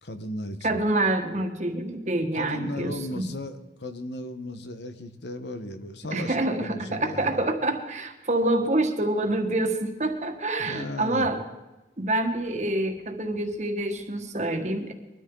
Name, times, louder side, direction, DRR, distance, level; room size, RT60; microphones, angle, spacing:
voice 1, 0.0-0.8 2.3-7.4 10.6-11.3, left 1 dB, 75° left, 9 dB, 1.3 m, -36 dB
voice 2, 0.6-3.3 6.1-11.4 12.0-14.9, right 1 dB, 40° right, 5 dB, 1.7 m, -27 dB
22.0 x 13.0 x 3.9 m, 1.1 s
head